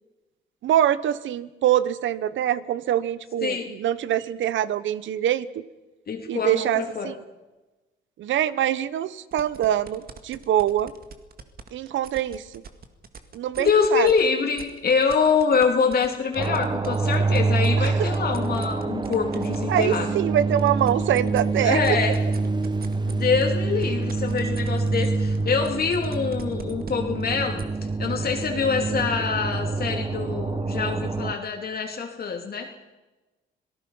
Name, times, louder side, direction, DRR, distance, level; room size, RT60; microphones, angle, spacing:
voice 1, 0.6-5.6 6.3-7.2 8.2-10.9 11.7-12.5 13.3-14.1 17.8-18.1 19.7-22.0, right 11 dB, 75° right, 17 dB, 1.0 m, -24 dB
voice 2, 6.1-7.1 13.6-20.1 21.6-22.2 23.0-27.6 28.0-32.7, left 5 dB, 50° left, 2 dB, 2.7 m, -25 dB
sound 1, 9.3-14.2 14.6-20.0 20.4-27.6, right 6 dB, 50° right, 2.0 m, -42 dB
sound 2, 16.4-31.3, right 3 dB, 20° right, 0.9 m, -26 dB
26.5 x 18.5 x 5.6 m, 1.1 s
cardioid pair, 90°, 20 cm